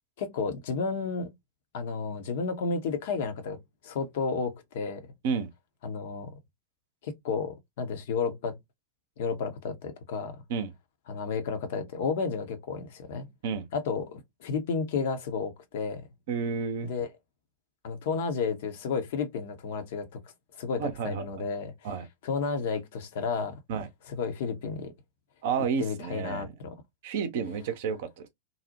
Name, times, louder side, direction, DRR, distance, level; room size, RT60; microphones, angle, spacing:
voice 1, 0.2-1.3 1.7-5.1 5.8-6.3 7.0-8.6 9.2-10.4 11.1-13.3 13.7-16.1 16.8-17.1 17.8-20.2 20.6-21.7 22.2-23.6 24.1-24.9 25.8-26.8, left 5 dB, 55° left, 0.6 m, -32 dB
voice 2, 16.3-16.9 20.8-21.3 21.8-22.1 23.7-23.9 25.4-26.5 27.0-28.3, right 6 dB, 55° right, 0.5 m, -31 dB
2.6 x 2.0 x 2.7 m
figure-of-eight pair, 90°, 0 cm